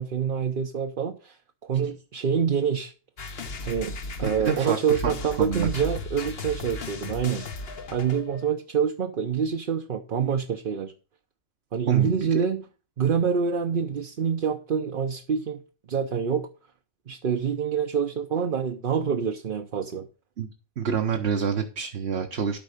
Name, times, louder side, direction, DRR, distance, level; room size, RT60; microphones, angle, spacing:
voice 1, 0.0-1.4 1.6-2.9 3.7-7.5 7.9-10.9 11.7-12.6 13.0-15.6 15.9-16.5 17.1-20.1, right 7 dB, 55° right, 0.9 m, -26 dB
sound 1, 3.2-8.5, left 3 dB, 65° left, 1.3 m, -36 dB
voice 2, 4.2-5.1 5.4-5.7 11.9-12.4 20.4-20.5 20.8-22.6, right 6 dB, 70° right, 1.3 m, -27 dB
13.0 x 5.4 x 5.0 m
omnidirectional pair, 1.1 m